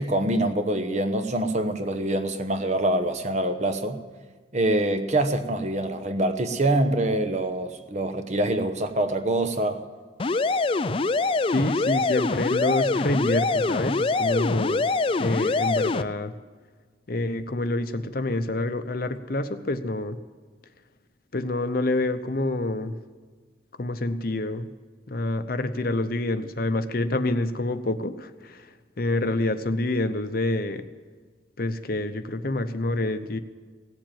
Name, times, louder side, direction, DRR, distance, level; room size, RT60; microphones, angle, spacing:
voice 1, 0.0-4.0 4.5-9.8, right 1 dB, 40° right, 8 dB, 1.0 m, -25 dB
sound 1, 10.2-16.0, left 3 dB, 30° left, 0.4 m, -24 dB
voice 2, 11.5-14.9 15.2-16.3 17.1-20.2 21.3-22.9 23.8-24.7 25.1-28.7 29.0-30.8 31.6-33.4, left 2 dB, 50° left, 10 dB, 0.7 m, -27 dB
17.5 x 7.6 x 9.0 m, 1.5 s
head